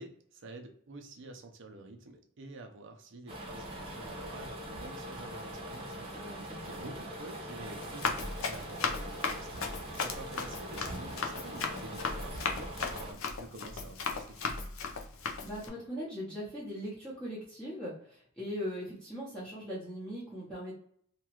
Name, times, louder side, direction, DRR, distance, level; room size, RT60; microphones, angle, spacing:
voice 1, 0.0-9.5 9.9-14.7, right 2 dB, 65° right, 4 dB, 0.6 m, -49 dB
sound 1, 3.3-13.1, right 1 dB, 30° right, 0.9 m, -42 dB
voice 2, 6.1-6.9 15.4-20.7, equal, 5° left, -9 dB, 0.8 m, -40 dB
Run, 7.8-15.7, left 5 dB, 80° left, 0.5 m, -36 dB
2.9 x 2.4 x 2.9 m, 0.62 s
head